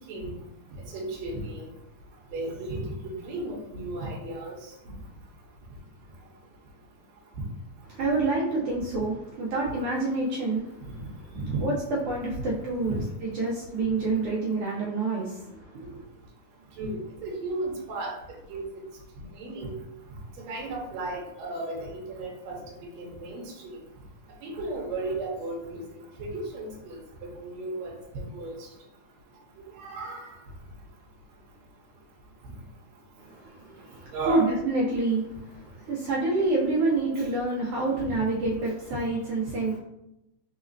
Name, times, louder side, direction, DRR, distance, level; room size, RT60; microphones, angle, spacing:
voice 1, 0.9-1.7 2.3-4.6 11.3-11.6 12.8-13.0 16.8-18.8 19.4-19.8 20.4-22.6 23.0-23.8 24.4-25.8 26.2-28.7 29.8-30.3 34.1-34.6 37.2-37.3, right 2 dB, 75° right, -2 dB, 1.9 m, -34 dB
voice 2, 7.9-10.9 11.6-16.0 33.2-39.8, right 3 dB, 90° right, -4 dB, 1.2 m, -28 dB
4.1 x 4.0 x 2.6 m, 0.85 s
omnidirectional pair, 3.4 m